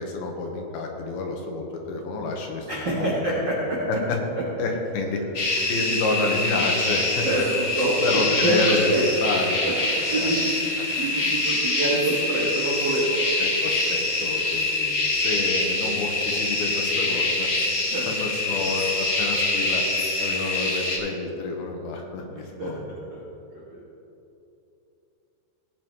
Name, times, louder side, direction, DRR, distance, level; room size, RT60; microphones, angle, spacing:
voice 1, 0.0-2.7 3.0-3.2 3.9-4.2 4.6-5.2 5.7-7.3 8.0-9.6 10.2-10.3 13.4-17.5 17.9-19.9 20.2-22.9, left 3 dB, 85° left, 1 dB, 3.1 m, -29 dB
voice 2, 2.7-4.0 4.3-4.4 7.2-7.4 7.7-9.0 9.6-10.6 10.9-13.2 17.9-18.1 18.4-18.6 22.3-23.2 23.5-23.8, right 1 dB, 70° right, -5 dB, 1.0 m, -26 dB
sound 1, 5.3-21.0, left 2 dB, 45° left, 1.2 m, -25 dB
17.0 x 9.1 x 3.2 m, 2.8 s
omnidirectional pair, 4.3 m